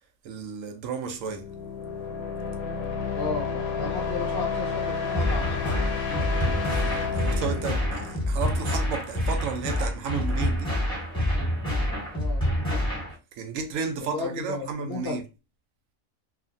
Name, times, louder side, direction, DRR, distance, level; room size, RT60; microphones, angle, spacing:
voice 1, 0.2-1.5 6.7-10.7 13.4-15.2, right 5 dB, 70° right, 0.9 m, -33 dB
sound 1, 1.2-8.9, left 5 dB, 85° left, 1.0 m, -31 dB
voice 2, 3.1-5.9 12.1-12.9 14.0-15.2, left 3 dB, 60° left, 0.6 m, -34 dB
sound 2, 5.1-13.1, equal, 5° left, 1.1 m, -27 dB
2.7 x 2.5 x 2.5 m
omnidirectional pair, 1.5 m